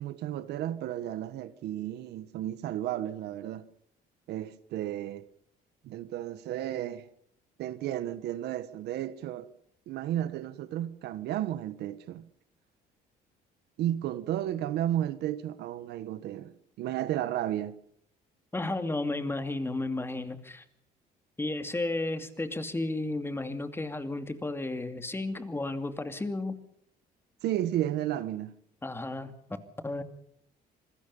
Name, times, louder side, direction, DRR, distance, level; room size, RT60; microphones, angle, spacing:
voice 1, 0.0-3.6 4.3-5.2 5.8-7.1 7.6-9.5 9.9-12.3 13.8-17.7 27.4-28.5, right 12 dB, 75° right, 1.5 m, -33 dB
voice 2, 18.5-20.6 21.4-26.6 28.8-29.3 29.8-30.0, left 2 dB, 15° left, 2.6 m, -33 dB
27.0 x 20.0 x 5.6 m
cardioid pair, 110°, 17 cm